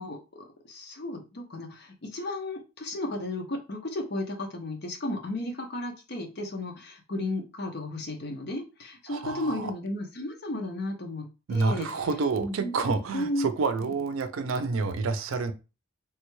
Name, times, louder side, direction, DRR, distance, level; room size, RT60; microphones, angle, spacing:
voice 1, 0.0-11.9 12.4-13.5 13.8-14.0, left 1 dB, 50° left, 0.7 m, -34 dB
voice 2, 9.1-9.7 11.5-15.5, right 4 dB, 80° right, 0.4 m, -28 dB
3.3 x 2.2 x 3.0 m
head